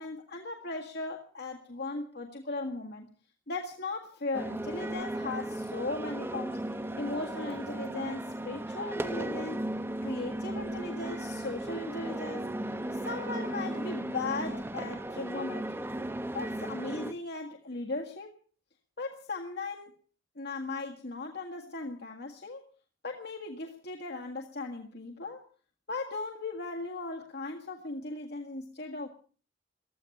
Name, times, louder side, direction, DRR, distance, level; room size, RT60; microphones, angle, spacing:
voice 1, 0.0-3.1 3.5-6.6 7.0-9.6 10.0-12.5 12.9-15.9 16.3-18.3 19.0-19.9 20.4-22.7 23.0-25.4 25.9-29.1, left 3 dB, 55° left, 1 dB, 1.8 m, -37 dB
sound 1, 4.3-17.1, right 1 dB, 10° right, 0.9 m, -36 dB
15.0 x 14.0 x 6.6 m, 0.42 s
head